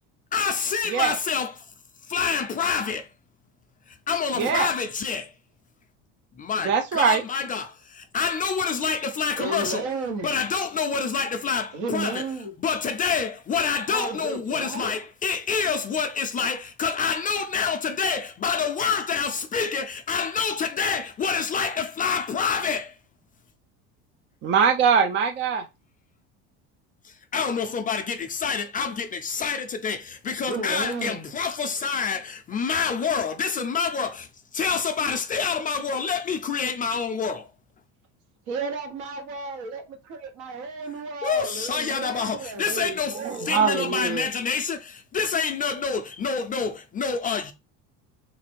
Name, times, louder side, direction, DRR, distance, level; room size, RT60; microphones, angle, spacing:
voice 1, 0.3-1.6 2.1-3.1 4.1-5.3 6.4-9.8 10.2-12.3 12.6-22.9 27.0-37.5 41.2-47.5, left 6 dB, 25° left, 0.4 m, -27 dB
voice 2, 4.4-4.7 6.6-7.2 24.4-25.6 42.7-44.3, right 6 dB, 35° right, 0.4 m, -23 dB
voice 3, 9.4-10.3 11.7-12.5 13.9-14.9 30.4-31.3 38.5-42.7 43.1-44.0, right 3 dB, 65° right, 1.2 m, -33 dB
3.2 x 2.5 x 4.4 m
cardioid pair, 125°, 32 cm